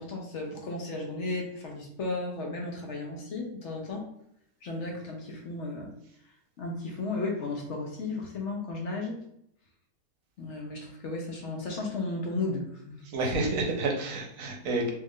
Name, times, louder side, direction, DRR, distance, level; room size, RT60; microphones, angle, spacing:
voice 1, 0.0-4.1 4.6-5.9 6.6-9.2 10.4-13.1 13.3-13.5, left 2 dB, 55° left, 0 dB, 0.9 m, -34 dB
voice 2, 13.1-14.9, right 2 dB, 65° right, 1 dB, 1.1 m, -29 dB
3.2 x 2.5 x 3.5 m, 0.75 s
omnidirectional pair, 1.7 m